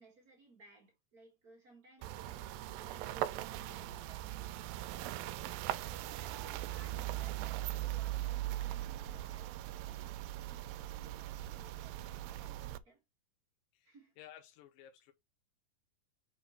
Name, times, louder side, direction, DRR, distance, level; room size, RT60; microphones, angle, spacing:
voice 1, 0.0-4.4 4.9-10.2 10.5-13.0 13.8-14.2, right 2 dB, 40° right, 1.3 m, -61 dB
Chink clink, 2.0-7.2, left 10 dB, 50° left, 2.2 m, -71 dB
sound 1, 2.0-12.8, right 14 dB, 85° right, 2.2 m, -40 dB
voice 2, 13.7-15.1, left 11 dB, 75° left, 2.5 m, -56 dB
6.1 x 3.8 x 4.3 m
omnidirectional pair, 4.0 m